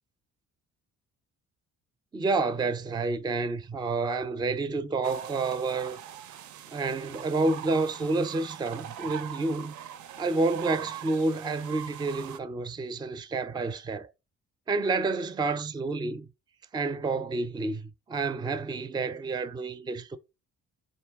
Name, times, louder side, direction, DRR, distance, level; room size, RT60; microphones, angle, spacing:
voice 1, 2.1-6.0 6.7-9.7 10.2-14.1 14.7-16.3 16.7-20.2, right 3 dB, 15° right, 0.4 m, -29 dB
sound 1, 5.0-12.4, right 10 dB, 75° right, 0.5 m, -42 dB
3.8 x 2.6 x 3.4 m
cardioid pair, 90°, 30 cm